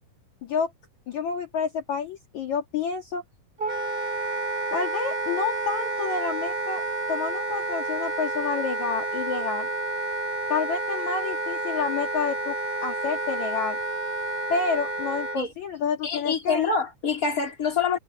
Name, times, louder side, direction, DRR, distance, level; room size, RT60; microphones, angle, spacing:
voice 1, 1.1-3.2 4.7-6.8 7.1-9.7 10.5-12.5 12.8-13.8 14.5-16.7, left 5 dB, 50° left, 3.3 m, -29 dB
Wind instrument woodwind instrument, 3.6-15.4, right 2 dB, 30° right, 0.9 m, -30 dB
voice 2, 16.0-18.0, left 5 dB, 20° left, 4.1 m, -26 dB
omnidirectional pair, 4.4 m